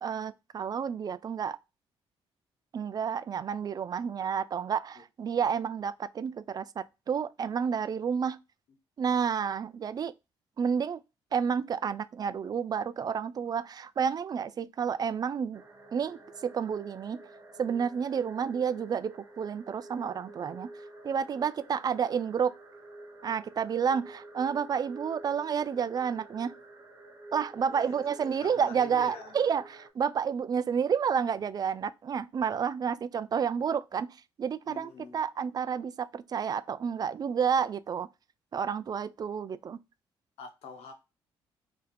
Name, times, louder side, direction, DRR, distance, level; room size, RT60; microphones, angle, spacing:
voice 1, 0.0-1.6 2.7-8.4 9.0-10.1 10.6-11.0 11.3-15.6 15.9-17.2 17.6-20.7 21.0-22.5 23.2-26.5 27.3-38.1 38.5-39.8, right 7 dB, 40° right, 0.3 m, -30 dB
sound 1, 15.5-29.9, right 2 dB, 25° right, 0.9 m, -50 dB
voice 2, 27.7-29.3 34.6-35.2 40.4-40.9, left 5 dB, 80° left, 0.9 m, -45 dB
2.6 x 2.5 x 4.2 m
cardioid pair, 75°, 11 cm